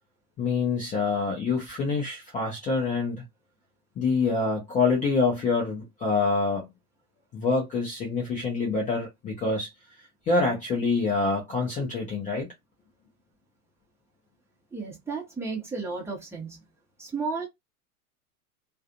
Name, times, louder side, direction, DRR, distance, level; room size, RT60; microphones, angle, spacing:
voice 1, 0.4-3.2 4.0-6.7 7.3-9.7 10.3-12.5, left 4 dB, 15° left, 0.7 m, -26 dB
voice 2, 14.7-16.7 17.0-17.5, right 4 dB, 5° right, 1.0 m, -33 dB
2.4 x 2.4 x 2.6 m
figure-of-eight pair, 100°, 45 cm